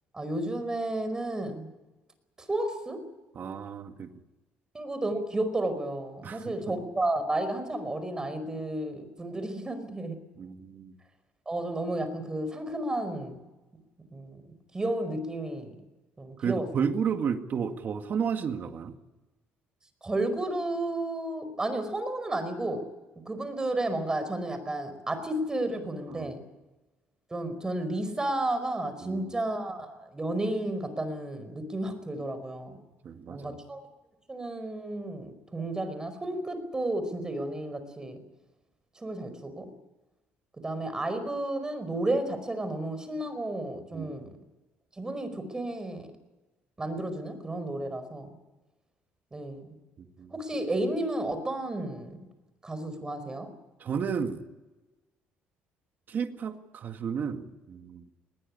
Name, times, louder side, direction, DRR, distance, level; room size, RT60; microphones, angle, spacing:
voice 1, 0.1-1.7 2.4-3.0 4.7-10.2 11.5-13.4 14.1-14.4 14.7-15.7 16.2-16.7 20.0-22.8 23.2-26.4 27.3-32.8 33.3-33.8 34.3-38.2 38.9-39.7 40.6-44.3 45.0-46.1 46.8-48.3 49.3-49.8 50.3-52.2 52.6-53.5, right 1 dB, 15° right, 10 dB, 4.9 m, -32 dB
voice 2, 3.4-4.1 6.2-6.5 10.4-10.9 16.4-18.9 26.1-26.3 29.0-29.3 33.0-33.6 43.9-44.3 50.2-50.3 53.8-54.4 56.1-58.0, right 6 dB, 45° right, 7 dB, 2.0 m, -32 dB
20.5 x 19.0 x 9.9 m, 1.1 s
cardioid pair, 115°, 4 cm